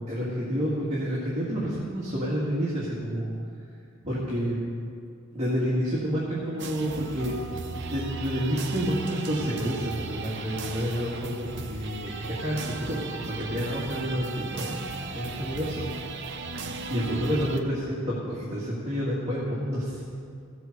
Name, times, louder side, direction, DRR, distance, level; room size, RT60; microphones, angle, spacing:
voice 1, 0.0-3.4 4.0-4.6 5.3-7.3 7.9-14.8 15.1-15.8 16.9-20.0, equal, 30° right, -7 dB, 1.9 m, -29 dB
sound 1, 6.6-17.6, right 4 dB, 55° right, 0.7 m, -36 dB
15.0 x 6.2 x 6.6 m, 2.4 s
head